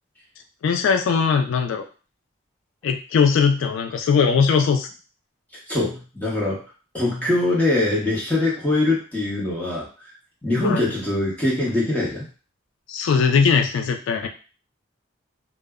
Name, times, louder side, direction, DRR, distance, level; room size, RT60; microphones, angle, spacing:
voice 1, 0.6-1.8 2.8-4.9 10.6-10.9 12.9-14.3, left 6 dB, 80° left, 5 dB, 0.3 m, -20 dB
voice 2, 5.7-6.6 6.9-9.9 10.4-12.3, left 2 dB, 10° left, -6 dB, 0.8 m, -22 dB
2.0 x 2.0 x 3.4 m, 0.36 s
head